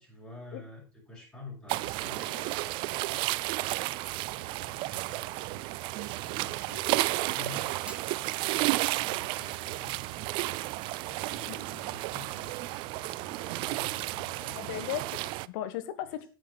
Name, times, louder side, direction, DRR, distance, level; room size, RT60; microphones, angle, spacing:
voice 1, 0.0-3.2 3.8-10.7 11.0-14.6 16.0-16.3, left 2 dB, 10° left, -7 dB, 6.5 m, -49 dB
sound 1, 1.7-15.5, right 20 dB, 45° right, 0.4 m, -32 dB
Fire, 7.7-14.7, right 1 dB, 10° right, 1.8 m, -55 dB
voice 2, 14.5-16.3, left 11 dB, 55° left, 12 dB, 1.4 m, -36 dB
9.4 x 8.0 x 4.7 m, 0.34 s
hypercardioid pair, 95°, 12 cm